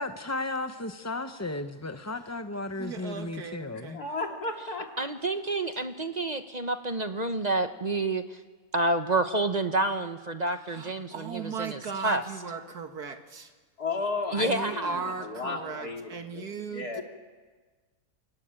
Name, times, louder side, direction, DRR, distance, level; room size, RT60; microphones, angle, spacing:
voice 1, 0.0-4.0, left 2 dB, 20° left, 8 dB, 0.5 m, -34 dB
voice 2, 2.8-4.0 10.5-13.5 14.4-17.0, right 5 dB, 80° right, 6 dB, 2.3 m, -37 dB
voice 3, 3.7-5.0 13.8-17.0, left 3 dB, 75° left, 2 dB, 3.5 m, -34 dB
voice 4, 5.0-8.4 8.7-12.2 14.3-14.9, right 2 dB, 30° right, 8 dB, 1.0 m, -29 dB
28.0 x 23.0 x 9.0 m, 1.4 s
omnidirectional pair, 1.6 m